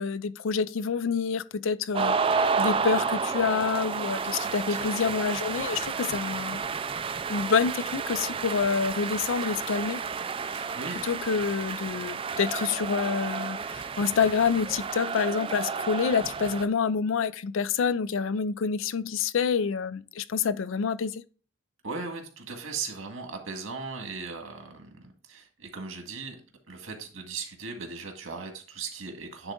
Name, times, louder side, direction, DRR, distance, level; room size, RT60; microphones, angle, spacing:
voice 1, 0.0-6.6 7.3-10.0 11.0-21.2, left 6 dB, 75° left, 0.4 m, -27 dB
sound 1, 1.9-16.7, right 5 dB, 25° right, 0.3 m, -31 dB
voice 2, 4.4-4.8 10.5-11.0 21.8-26.4 26.7-29.5, right 4 dB, 90° right, 1.8 m, -38 dB
9.8 x 3.9 x 3.7 m
head